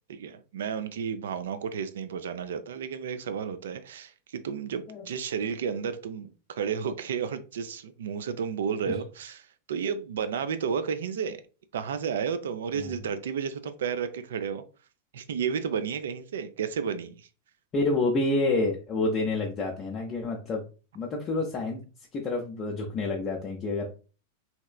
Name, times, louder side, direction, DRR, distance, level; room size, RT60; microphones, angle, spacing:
voice 1, 0.1-11.4 11.7-14.6 15.1-17.3, right 7 dB, 60° right, 0.3 m, -32 dB
voice 2, 17.7-20.6 20.9-21.8 22.1-23.9, left 2 dB, 30° left, 0.5 m, -28 dB
3.1 x 2.8 x 2.2 m
figure-of-eight pair, 90°, 0 cm